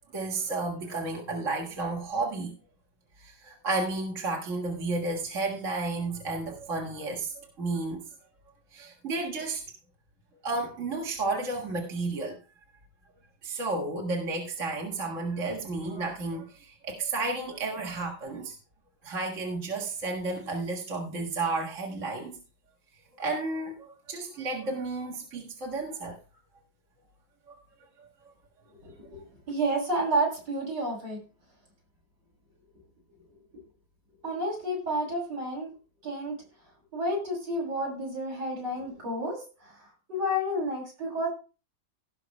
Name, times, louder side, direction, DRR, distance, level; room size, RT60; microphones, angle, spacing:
voice 1, 0.1-2.6 3.2-8.1 8.7-9.6 10.4-12.4 13.4-18.6 19.0-22.4 23.2-26.2 27.5-27.6 28.0-28.1, right 3 dB, 40° right, 2.0 m, -32 dB
voice 2, 28.7-31.2 34.2-35.7 36.0-36.4 36.9-41.3, right 1 dB, 60° right, 7.6 m, -31 dB
17.5 x 5.9 x 3.2 m
omnidirectional pair, 2.1 m